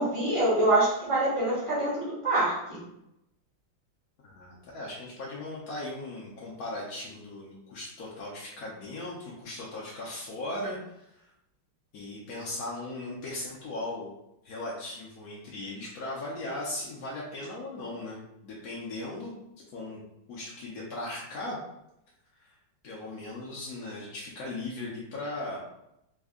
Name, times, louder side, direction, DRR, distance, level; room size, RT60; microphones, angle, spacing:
voice 1, 0.0-2.8, right 2 dB, 30° right, -7 dB, 0.6 m, -25 dB
voice 2, 4.2-11.2 11.9-14.1 14.4-19.3 19.7-20.0 20.3-21.6 22.4-22.5 22.8-25.6, left 2 dB, 65° left, -5 dB, 1.0 m, -38 dB
3.5 x 2.1 x 3.6 m, 0.84 s
omnidirectional pair, 2.1 m